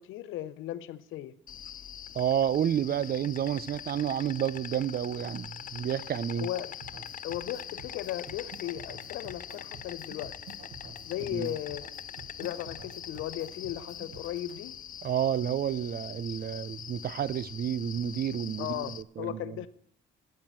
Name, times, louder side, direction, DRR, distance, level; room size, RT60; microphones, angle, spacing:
voice 1, 0.0-1.3 6.4-6.8 7.2-10.3 11.0-11.9 12.4-14.7 18.6-19.7, left 13 dB, 90° left, 0.7 m, -36 dB
Insect, 1.5-19.0, left 9 dB, 45° left, 0.4 m, -43 dB
voice 2, 2.1-6.5 11.3-11.5 15.0-19.6, right 9 dB, 50° right, 0.6 m, -30 dB
sound 1, 6.8-14.6, right 5 dB, 85° right, 1.2 m, -50 dB
9.5 x 9.2 x 7.5 m
cardioid pair, 90°, 20 cm